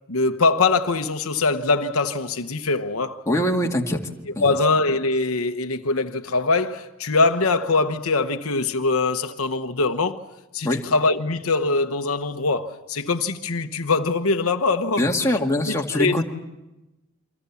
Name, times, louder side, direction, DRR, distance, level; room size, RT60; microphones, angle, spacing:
voice 1, 0.1-3.2 4.4-10.2 10.5-15.0 15.3-15.4 15.9-16.2, left 3 dB, 70° left, 1.1 m, -22 dB
voice 2, 3.3-4.0 4.4-4.5 10.6-10.8 15.0-16.2, left 1 dB, 15° left, 2.0 m, -22 dB
28.0 x 25.5 x 7.1 m
head